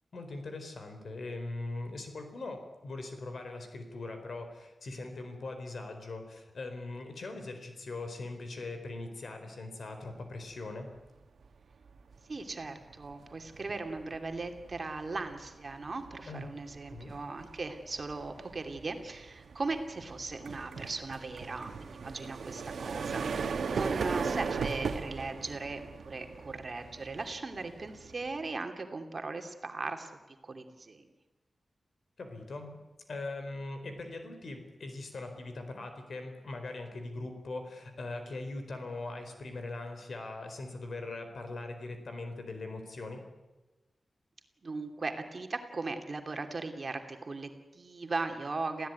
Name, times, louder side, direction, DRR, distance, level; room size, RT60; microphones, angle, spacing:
voice 1, 0.1-10.9 16.3-16.4 16.9-17.1 32.2-32.8 33.1-43.2, left 2 dB, 65° left, 6 dB, 4.4 m, -41 dB
sound 1, 11.1-11.4 11.8-28.6, right 5 dB, 90° right, 1.5 m, -39 dB
voice 2, 12.3-31.1 44.6-48.9, right 3 dB, 40° right, 5 dB, 2.7 m, -38 dB
27.5 x 16.0 x 9.6 m, 1.1 s
wide cardioid pair, 110°, 0 cm